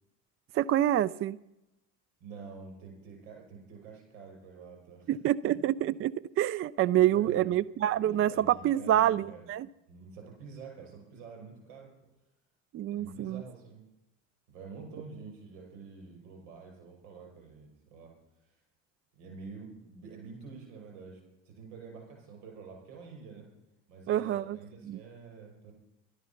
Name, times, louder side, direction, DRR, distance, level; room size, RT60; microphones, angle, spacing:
voice 1, 0.5-1.4 5.1-9.7 12.7-13.4 24.1-24.6 24.8-25.0, right 12 dB, 35° right, 20 dB, 0.4 m, -27 dB
voice 2, 2.2-5.1 5.4-5.6 7.0-7.5 7.9-9.5 9.9-11.9 12.9-13.8 14.5-18.1 18.4-18.5 19.1-23.5 23.9-25.7, right 5 dB, 80° right, 1 dB, 6.1 m, -47 dB
12.5 x 12.0 x 5.8 m, 0.89 s
hypercardioid pair, 70°, 37 cm